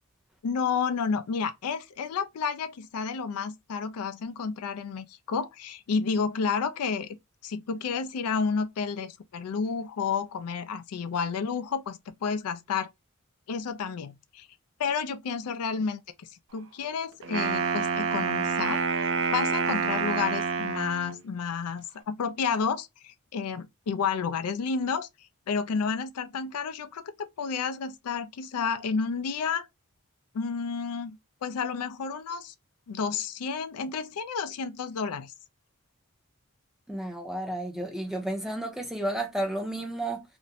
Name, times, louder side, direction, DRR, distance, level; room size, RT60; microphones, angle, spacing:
voice 1, 0.4-7.2 7.4-12.9 13.5-14.5 14.8-16.0 16.5-25.1 25.5-29.7 30.3-31.2 31.4-32.5 32.9-35.3, left 5 dB, 90° left, 0.4 m, -31 dB
Wind instrument woodwind instrument, 17.2-21.2, right 5 dB, 55° right, 0.4 m, -28 dB
voice 2, 36.9-40.2, right 1 dB, ahead, 0.6 m, -32 dB
2.5 x 2.1 x 2.7 m
head